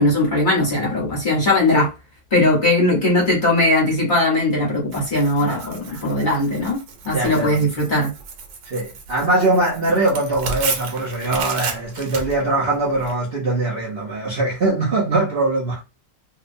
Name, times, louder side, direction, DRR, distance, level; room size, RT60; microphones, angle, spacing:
voice 1, 0.0-1.9 2.3-6.8 7.0-8.1, left 1 dB, 45° left, 0.7 m, -19 dB
Tearing, 4.9-13.1, right 5 dB, 85° right, 1.3 m, -33 dB
voice 2, 5.4-6.4 7.1-7.7 8.6-15.8, right 2 dB, 70° right, 0.5 m, -22 dB
2.9 x 2.1 x 2.5 m
omnidirectional pair, 1.9 m